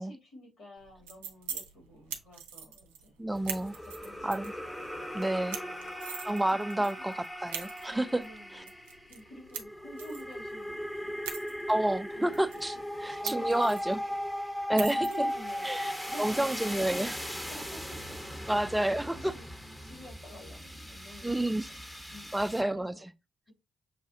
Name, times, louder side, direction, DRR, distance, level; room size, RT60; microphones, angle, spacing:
voice 1, 0.0-3.2 3.7-4.7 4.9-5.9 6.5-6.9 7.9-11.3 12.1-12.4 12.7-12.8 13.1-14.2 14.7-17.8 18.3-18.7 19.1-19.5 19.8-23.0 23.5-23.6, equal, 60° left, 2.6 m, -50 dB
sound 1, 0.8-17.7, right 8 dB, 85° right, 0.4 m, -45 dB
voice 2, 3.2-3.7 4.2-4.5 5.1-5.6 6.2-8.2 8.5-8.6 11.7-12.7 13.0-14.0 14.7-15.1 15.6-17.2 18.5-19.3 21.2-21.7 22.3-23.1, right 1 dB, 10° right, 0.5 m, -29 dB
sound 2, 3.3-22.6, equal, 10° left, 0.9 m, -38 dB
6.4 x 2.4 x 2.6 m
hypercardioid pair, 40°, 0 cm